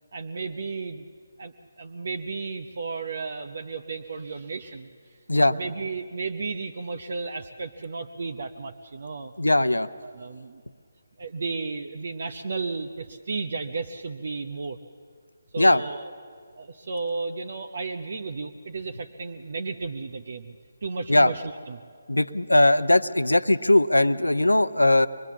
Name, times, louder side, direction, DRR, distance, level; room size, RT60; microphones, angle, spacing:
voice 1, 0.1-1.0 1.4-4.9 5.5-9.3 10.0-10.6 11.2-14.8 15.5-16.1 16.6-20.5 20.8-21.8, right 4 dB, 50° right, 5 dB, 0.8 m, -33 dB
voice 2, 9.4-9.9 15.6-15.8 21.1-21.3 22.1-25.1, left 1 dB, 80° left, 14 dB, 0.7 m, -19 dB
25.0 x 21.0 x 7.2 m, 2.1 s
figure-of-eight pair, 145°, 0 cm